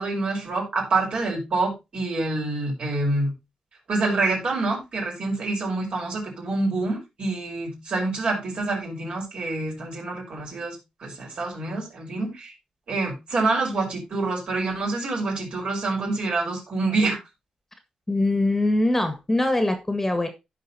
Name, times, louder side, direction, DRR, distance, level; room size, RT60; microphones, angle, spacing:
voice 1, 0.0-3.3 3.9-12.5 12.9-17.2, right 3 dB, 55° right, -1 dB, 5.4 m, -27 dB
voice 2, 18.1-20.3, left 2 dB, 15° left, 8 dB, 1.6 m, -22 dB
16.0 x 5.4 x 2.8 m, 0.24 s
wide cardioid pair, 125°, 2 cm